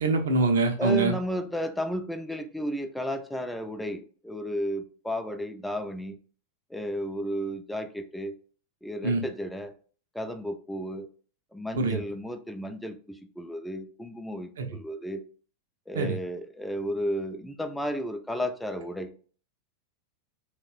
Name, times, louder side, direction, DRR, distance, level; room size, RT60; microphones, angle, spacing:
voice 1, 0.0-1.1 9.0-9.2 11.8-12.0 14.6-14.7 15.9-16.2, right 3 dB, 60° right, 5 dB, 0.4 m, -24 dB
voice 2, 0.8-6.2 6.7-8.3 8.8-9.7 10.1-11.1 11.5-15.2 15.9-19.1, equal, 5° left, 7 dB, 0.3 m, -33 dB
2.9 x 2.1 x 2.4 m, 0.42 s
figure-of-eight pair, 90°, 0 cm